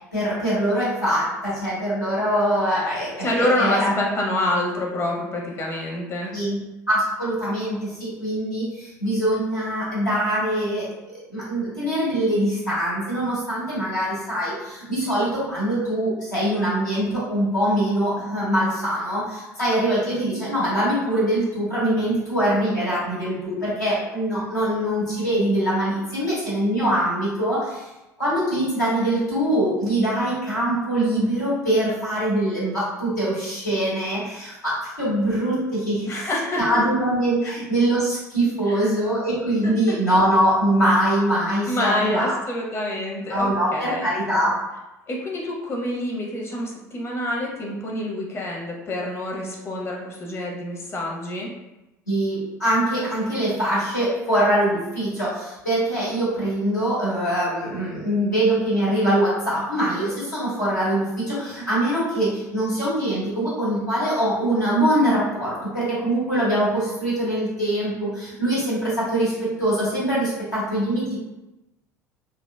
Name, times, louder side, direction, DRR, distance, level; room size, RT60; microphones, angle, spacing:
voice 1, 0.1-3.1 3.4-3.9 6.3-6.6 6.9-10.9 11.3-27.9 28.2-36.2 36.6-42.3 43.3-44.5 52.1-71.2, right 1 dB, 85° left, -10 dB, 1.3 m, -23 dB
voice 2, 3.2-6.3 36.1-36.6 37.4-37.5 38.7-38.8 39.9-40.0 41.7-44.1 45.1-51.5, left 1 dB, 25° left, -1 dB, 0.8 m, -27 dB
3.4 x 2.1 x 2.2 m, 1.0 s
figure-of-eight pair, 65°, 9 cm